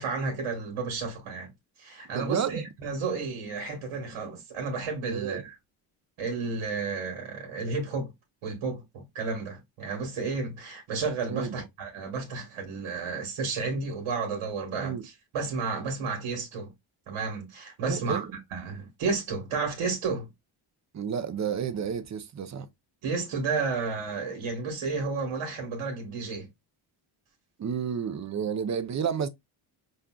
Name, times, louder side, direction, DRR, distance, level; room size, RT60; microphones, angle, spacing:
voice 1, 0.0-1.5 1.8-5.4 6.2-8.1 8.4-16.7 17.1-20.3 23.0-26.5, right 4 dB, 75° right, 1.4 m, -32 dB
voice 2, 2.0-2.7 5.1-5.4 11.3-11.7 14.8-15.1 17.8-18.4 20.9-22.7 27.6-29.3, right 7 dB, 35° right, 0.6 m, -31 dB
5.2 x 2.4 x 2.2 m
cardioid pair, 105°, 49 cm